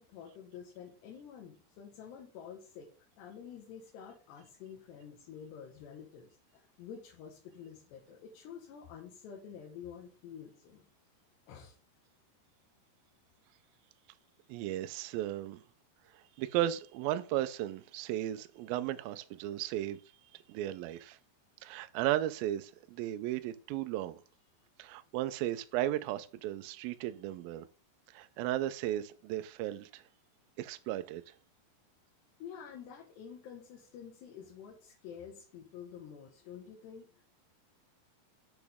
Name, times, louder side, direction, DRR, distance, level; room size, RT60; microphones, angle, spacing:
voice 1, 0.0-2.9 3.2-10.8 11.5-11.7 32.4-37.2, left 7 dB, 80° left, 3.5 m, -49 dB
voice 2, 14.5-15.6 16.4-20.0 20.3-21.2 21.6-24.2 24.8-27.7 28.1-30.0 30.6-31.2, right 13 dB, 85° right, 2.1 m, -35 dB
8.3 x 6.1 x 3.5 m
omnidirectional pair, 4.9 m